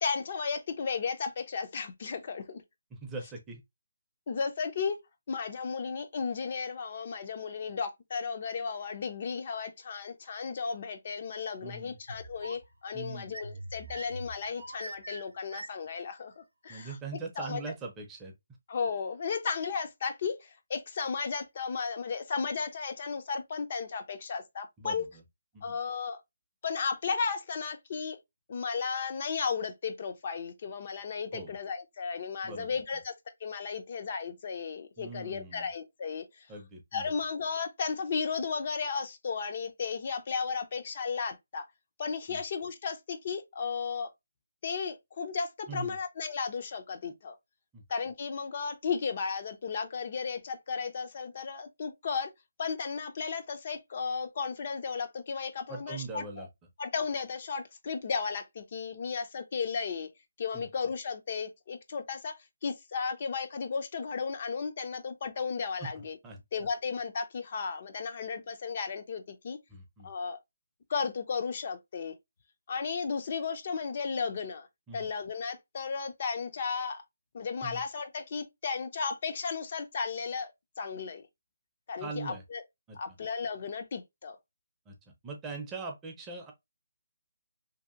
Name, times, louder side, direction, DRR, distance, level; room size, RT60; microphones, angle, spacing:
voice 1, 0.0-2.6 4.3-5.0 5.3-17.0 17.4-17.6 18.7-25.0 25.6-26.2 26.6-28.2 28.5-33.1 33.4-36.5 36.9-41.7 42.0-44.1 44.6-47.4 47.9-52.3 52.6-56.5 56.8-60.1 60.4-62.4 62.6-66.2 66.5-69.6 70.0-70.4 70.9-72.1 72.7-74.7 74.9-77.0 77.3-80.5 80.8-81.3 81.9-82.6 83.0-84.4, left 5 dB, 40° left, 0.4 m, -34 dB
voice 2, 2.9-3.6 11.6-12.0 12.9-13.3 16.7-18.3 24.8-25.2 25.5-25.8 31.3-31.5 32.4-32.8 35.0-35.7 36.5-37.1 42.3-42.4 45.7-46.0 47.7-47.8 55.7-56.5 60.5-60.7 65.8-66.4 69.7-70.1 74.9-75.1 77.6-77.8 82.0-82.4 82.9-83.0 84.9-85.0 85.2-86.5, right 3 dB, 10° right, 0.5 m, -41 dB
sound 1, 12.1-12.7 13.3-16.0, right 2 dB, 90° right, 0.5 m, -43 dB
2.7 x 2.4 x 2.4 m
hypercardioid pair, 165°, 0 cm